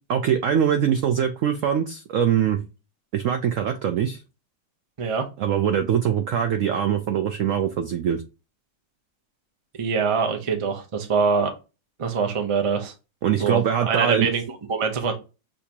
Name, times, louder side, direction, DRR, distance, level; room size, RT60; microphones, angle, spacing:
voice 1, 0.1-2.6 3.1-4.2 5.4-8.2 13.2-14.3, right 8 dB, 80° right, 7 dB, 0.7 m, -22 dB
voice 2, 9.8-11.5 12.0-12.9 13.4-13.6 13.9-14.4 14.7-15.1, right 5 dB, 50° right, 4 dB, 0.3 m, -23 dB
6.5 x 2.8 x 2.8 m, 0.29 s
omnidirectional pair, 2.0 m